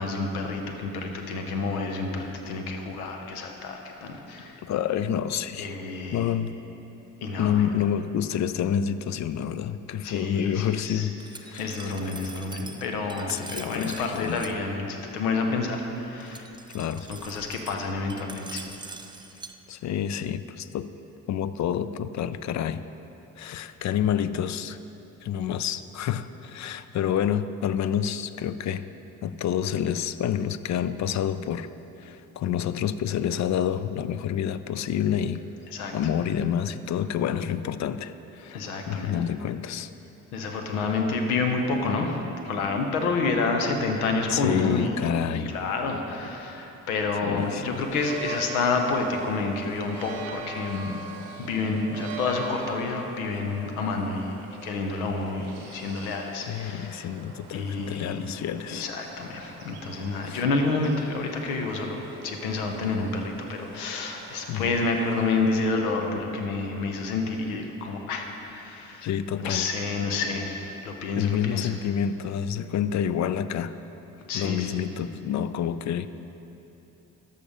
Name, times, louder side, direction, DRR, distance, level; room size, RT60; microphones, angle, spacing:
voice 1, 0.0-4.6 5.6-6.2 7.2-7.6 10.0-11.1 11.6-16.5 17.1-18.7 35.7-35.9 38.5-39.2 40.3-42.2 42.4-50.9 51.4-54.4 54.6-57.1 57.5-58.2 58.7-69.1 69.4-71.7 74.3-74.8, left 3 dB, 80° left, 4 dB, 0.9 m, -29 dB
voice 2, 4.6-5.7 6.1-6.5 7.4-11.2 11.4-11.9 13.3-14.4 16.7-17.0 19.7-20.9 21.3-22.8 23.4-24.8 25.2-28.9 29.2-31.7 32.0-35.4 35.9-39.9 44.3-45.5 47.2-47.8 56.4-58.9 60.3-60.4 64.5-64.8 69.0-69.7 71.2-73.7 74.3-76.1, left 9 dB, 45° left, 13 dB, 0.4 m, -28 dB
Glass, 11.2-14.5 16.2-19.5, right 3 dB, 10° right, 0.5 m, -43 dB
sound 1, 47.4-65.6, right 3 dB, 85° right, 0.8 m, -43 dB
13.0 x 5.6 x 5.0 m, 3.0 s
hypercardioid pair, 45°, 43 cm